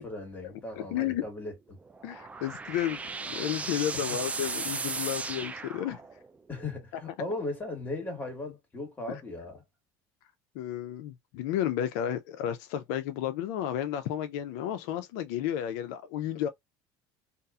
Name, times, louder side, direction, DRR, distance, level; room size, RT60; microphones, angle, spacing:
voice 1, 0.0-1.8 3.9-4.2 6.5-9.6, left 2 dB, 20° left, 1.5 m, -37 dB
voice 2, 0.8-1.2 2.0-6.0 9.1-9.2 10.6-16.5, left 11 dB, 80° left, 0.4 m, -32 dB
sound 1, 1.8-6.4, right 4 dB, 15° right, 0.3 m, -36 dB
2.6 x 2.4 x 2.3 m
supercardioid pair, 120°, 9 cm